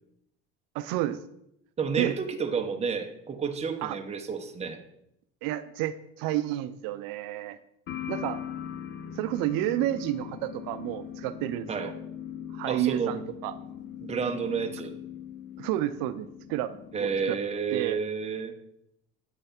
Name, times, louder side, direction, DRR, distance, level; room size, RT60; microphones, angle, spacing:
voice 1, 0.7-1.2 2.0-2.1 3.8-4.0 5.4-7.6 8.1-8.4 9.1-11.9 12.5-13.5 15.6-16.7 17.0-17.4 17.7-18.0, right 13 dB, 70° right, 11 dB, 0.5 m, -30 dB
voice 2, 1.8-4.8 11.7-11.9 12.7-13.2 14.0-15.0 16.9-18.5, right 6 dB, 20° right, 4 dB, 0.7 m, -30 dB
sound 1, 7.9-17.4, left 9 dB, 35° left, 0.4 m, -40 dB
8.0 x 3.2 x 5.7 m, 0.78 s
cardioid pair, 115°, 36 cm